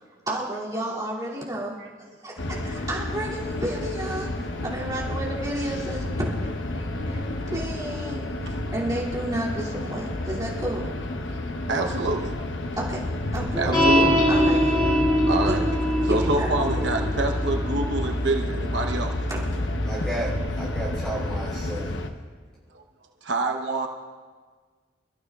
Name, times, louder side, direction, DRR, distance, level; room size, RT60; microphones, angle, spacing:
voice 1, 0.3-1.8 2.2-8.3 8.7-10.9 12.8-13.0 13.3-13.7 14.3-14.8 15.5-15.6 16.1-16.9 19.3-19.4, right 1 dB, 20° right, -7 dB, 2.7 m, -31 dB
sound 1, 2.4-22.1, left 1 dB, 90° left, 1.0 m, -31 dB
voice 2, 8.5-8.8 11.7-12.3 13.6-14.3 15.3-15.6 16.0-19.2 22.7-22.8 23.2-23.9, right 2 dB, 75° right, 3 dB, 1.0 m, -27 dB
sound 2, 13.7-20.4, equal, 25° left, 3.5 m, -24 dB
voice 3, 19.8-22.1, right 1 dB, 5° left, -4 dB, 5.0 m, -33 dB
28.0 x 14.0 x 2.4 m, 1.5 s
head